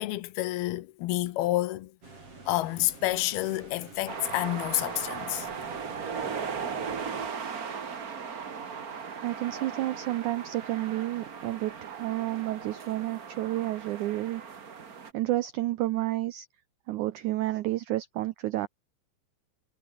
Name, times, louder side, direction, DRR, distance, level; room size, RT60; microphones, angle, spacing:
voice 1, 0.0-1.9 2.5-5.5, left 16 dB, 80° left, 2.9 m, -29 dB
sound 1, 2.0-7.3, right 3 dB, 35° right, 7.4 m, -48 dB
sound 2, 4.1-15.1, right 6 dB, 55° right, 0.9 m, -38 dB
voice 2, 9.2-14.4 15.1-16.5 16.9-18.7, right 16 dB, 80° right, 1.7 m, -30 dB
omnidirectional pair, 4.4 m